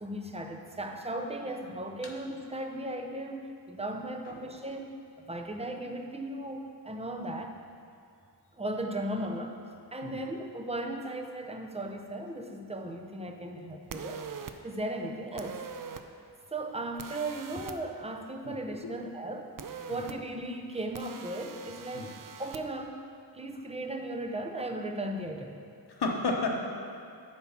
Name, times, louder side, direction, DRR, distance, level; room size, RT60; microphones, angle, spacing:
voice 1, 0.0-5.0 5.3-7.5 8.6-9.6 9.9-14.2 14.6-15.6 16.5-19.5 19.9-23.1 23.3-25.6, right 1 dB, 15° right, 3 dB, 0.7 m, -36 dB
sound 1, 13.9-14.5 15.4-16.0 17.0-17.8 19.6-20.1 20.9-22.6, right 6 dB, 50° right, 0.5 m, -42 dB
voice 2, 18.4-19.0 19.9-20.1 21.9-22.1 25.9-26.6, left 3 dB, 65° left, 1 dB, 1.1 m, -33 dB
10.5 x 4.6 x 5.9 m, 2.4 s
wide cardioid pair, 100°, 42 cm